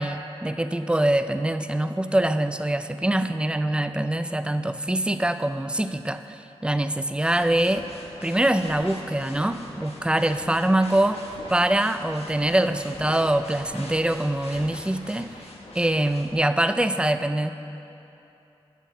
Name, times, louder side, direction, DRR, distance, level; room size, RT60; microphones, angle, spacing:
voice 1, 0.0-7.9 8.2-11.2 11.5-15.3 15.8-17.5, right 1 dB, 10° right, 10 dB, 0.5 m, -24 dB
sound 1, 7.3-16.3, left 1 dB, 75° left, 1.4 m, -42 dB
8.3 x 7.7 x 7.3 m, 2.9 s
cardioid pair, 60°, 10 cm